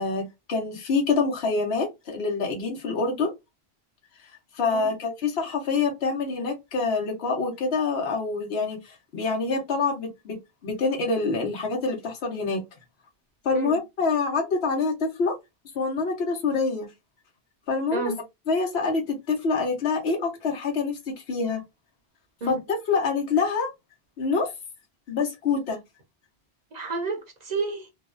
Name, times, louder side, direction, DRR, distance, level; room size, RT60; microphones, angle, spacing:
voice 1, 0.0-3.3 4.6-10.4 10.6-12.6 13.4-15.3 15.7-16.9 17.7-18.1 18.5-21.0 21.3-21.6 22.5-23.7 24.2-24.5 25.1-25.8, left 4 dB, 75° left, 1.1 m, -26 dB
voice 2, 17.9-18.2 22.4-22.5 26.7-27.9, right 3 dB, 45° right, 0.7 m, -31 dB
2.9 x 2.0 x 2.4 m
omnidirectional pair, 1.1 m